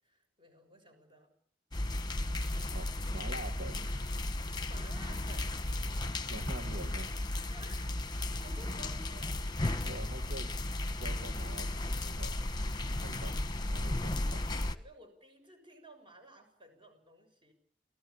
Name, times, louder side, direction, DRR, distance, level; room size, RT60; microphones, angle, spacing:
voice 1, 0.0-1.3 4.6-5.6 7.5-9.5 13.8-14.0 14.6-17.5, right 1 dB, 30° right, 7 dB, 6.7 m, -55 dB
sound 1, 1.7-14.7, left 1 dB, 25° left, 1.3 m, -35 dB
voice 2, 2.7-4.1 6.3-7.2 9.8-10.5 11.0-12.4 13.0-13.4 13.7-14.4, right 2 dB, 70° right, 7 dB, 1.6 m, -46 dB
29.0 x 17.0 x 8.6 m, 0.65 s
head